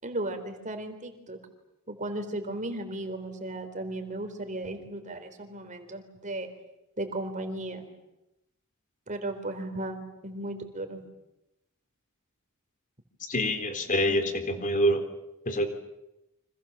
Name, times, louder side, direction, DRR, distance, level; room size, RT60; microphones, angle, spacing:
voice 1, 0.0-1.4 1.9-6.5 7.0-7.9 9.1-11.0, right 1 dB, 35° right, 7 dB, 4.0 m, -35 dB
voice 2, 13.2-15.0 15.5-15.7, equal, 40° left, 8 dB, 3.9 m, -26 dB
29.5 x 26.0 x 7.4 m, 0.91 s
head